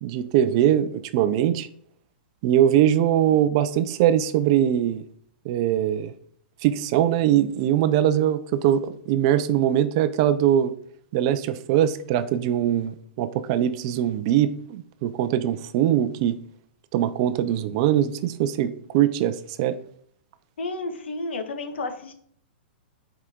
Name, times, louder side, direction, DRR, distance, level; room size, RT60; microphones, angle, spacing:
voice 1, 0.0-1.7 2.4-5.0 5.4-6.1 6.6-10.7 11.1-16.4 16.9-19.8, right 11 dB, 30° right, 12 dB, 0.4 m, -22 dB
voice 2, 20.6-22.1, left 2 dB, 85° left, 6 dB, 1.5 m, -32 dB
9.3 x 4.9 x 3.7 m, 0.62 s
hypercardioid pair, 175°, 6 cm